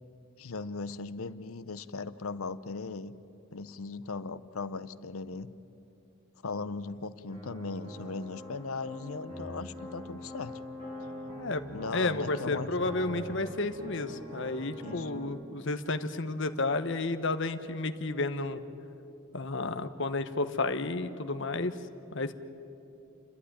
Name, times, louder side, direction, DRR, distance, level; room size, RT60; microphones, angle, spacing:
voice 1, 0.4-3.2 3.5-5.6 6.4-10.6 11.7-12.9 14.8-15.2, left 4 dB, 80° left, 14 dB, 0.8 m, -38 dB
sound 1, 7.3-15.3, equal, 25° right, 6.3 m, -43 dB
voice 2, 11.9-18.6 19.3-21.7 22.1-22.3, left 2 dB, 55° left, 10 dB, 1.0 m, -31 dB
29.5 x 12.0 x 10.0 m, 2.8 s
head